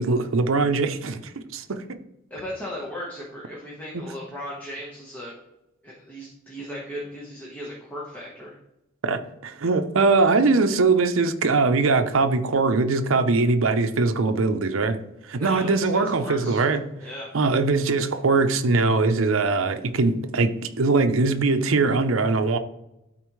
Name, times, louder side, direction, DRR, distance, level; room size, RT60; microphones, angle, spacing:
voice 1, 0.0-2.0 9.0-15.0 15.3-16.8 17.3-22.6, right 3 dB, 75° right, 0.6 m, -21 dB
voice 2, 2.3-5.3 5.8-8.6 15.3-16.7 17.0-17.3, left 1 dB, 10° left, 1.2 m, -37 dB
12.5 x 4.3 x 3.1 m
head